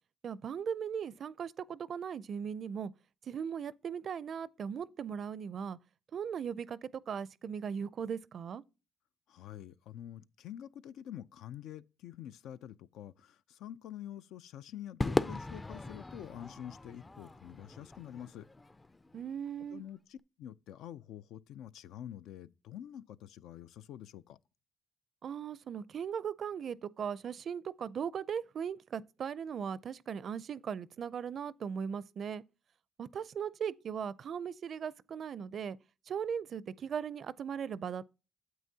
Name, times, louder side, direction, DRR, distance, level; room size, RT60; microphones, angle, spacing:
voice 1, 0.2-2.9 3.3-5.8 6.1-8.6 19.1-19.8 25.2-32.4 33.0-35.8 36.1-38.1, right 7 dB, 55° right, 0.4 m, -38 dB
voice 2, 9.3-18.5 19.7-24.4, left 11 dB, 85° left, 0.4 m, -47 dB
Crowd / Fireworks, 15.0-19.5, left 2 dB, 20° left, 0.4 m, -38 dB
9.3 x 8.0 x 2.7 m
cardioid pair, 90°, 0 cm